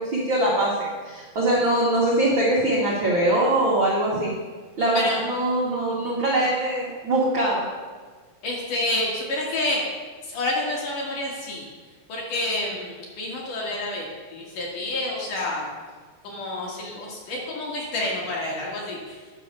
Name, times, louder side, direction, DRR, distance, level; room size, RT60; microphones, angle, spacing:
voice 1, 0.0-4.3 4.8-7.6, right 1 dB, 80° right, -5 dB, 1.1 m, -22 dB
voice 2, 8.4-9.9 10.2-11.7 12.1-15.7 16.2-19.2, left 2 dB, 55° left, -3 dB, 3.0 m, -29 dB
10.0 x 5.7 x 6.6 m, 1.5 s
omnidirectional pair, 4.7 m